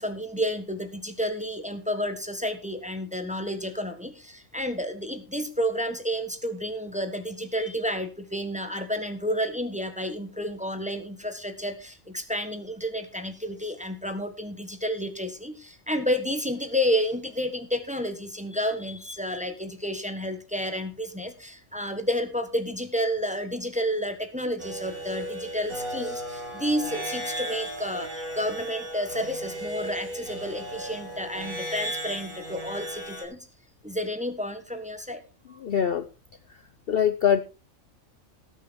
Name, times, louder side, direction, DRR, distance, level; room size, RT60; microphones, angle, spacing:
voice 1, 0.0-33.4 33.8-35.2, equal, 5° right, 7 dB, 1.4 m, -30 dB
sound 1, 24.6-33.2, right 1 dB, 80° right, 4.3 m, -35 dB
voice 2, 35.6-36.0 36.9-37.4, left 8 dB, 55° left, 9 dB, 0.8 m, -22 dB
18.5 x 6.4 x 4.5 m, 0.33 s
omnidirectional pair, 1.4 m